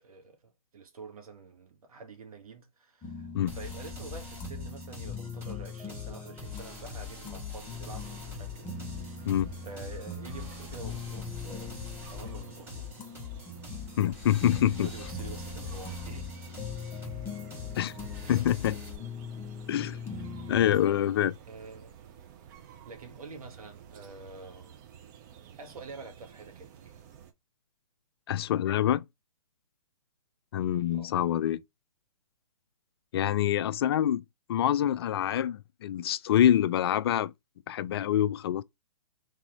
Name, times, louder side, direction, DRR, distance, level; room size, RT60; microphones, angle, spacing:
voice 1, 0.0-9.3 9.6-11.8 12.1-13.0 14.8-16.4 18.2-18.5 20.1-20.4 21.4-22.0 22.9-24.8 25.6-27.0 30.9-31.1, right 4 dB, 70° right, 1.7 m, -47 dB
sound 1, 3.0-20.9, left 4 dB, 10° left, 0.7 m, -42 dB
sound 2, 3.5-19.0, left 5 dB, 10° right, 2.4 m, -43 dB
sound 3, 7.9-27.3, right 9 dB, 30° right, 0.7 m, -52 dB
voice 2, 14.0-14.9 17.8-17.9 18.3-18.8 19.7-20.0 20.5-21.4 28.3-29.0 30.5-31.6 33.1-34.2 34.5-37.3 37.7-38.6, left 11 dB, 40° left, 0.4 m, -26 dB
3.5 x 3.4 x 4.2 m
hypercardioid pair, 140°, 19 cm